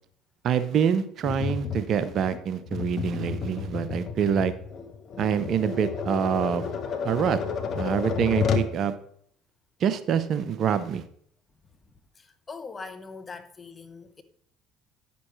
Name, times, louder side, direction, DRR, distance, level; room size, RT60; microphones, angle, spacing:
voice 1, 0.4-4.5 5.2-6.7 7.0-7.4 7.8-8.9 9.8-11.0, right 8 dB, 55° right, 0.6 m, -26 dB
Tap, 1.2-8.7, left 6 dB, 50° left, 1.0 m, -31 dB
voice 2, 11.9-14.2, left 4 dB, 30° left, 1.0 m, -42 dB
9.7 x 6.9 x 3.1 m
hypercardioid pair, 70°, 0 cm